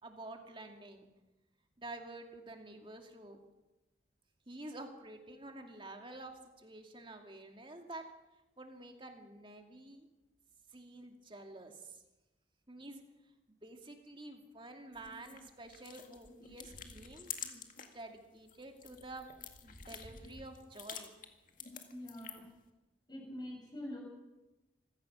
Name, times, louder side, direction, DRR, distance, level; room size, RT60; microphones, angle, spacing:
voice 1, 0.0-1.1 1.8-3.4 4.5-8.0 8.6-10.1 10.7-12.0 12.7-13.0 13.5-19.3 19.6-21.1, right 2 dB, 25° right, 4 dB, 2.4 m, -49 dB
sound 1, 14.9-18.0 18.4-22.6, left 7 dB, 45° left, 2.0 m, -49 dB
voice 2, 21.9-22.5 23.1-24.0, left 1 dB, 25° left, 0 dB, 7.4 m, -45 dB
26.0 x 16.0 x 6.3 m, 1.0 s
head